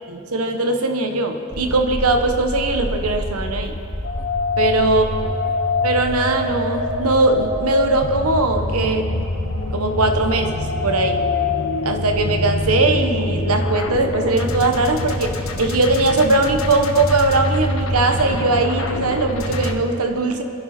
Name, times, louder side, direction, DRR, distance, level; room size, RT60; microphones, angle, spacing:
voice 1, 0.1-3.8 4.6-5.0 5.8-9.1 9.7-11.2 11.8-20.4, right 2 dB, 85° right, 5 dB, 1.3 m, -20 dB
sound 1, 1.5-19.7, left 2 dB, 70° left, 1.5 m, -25 dB
29.5 x 11.0 x 4.5 m, 2.7 s
head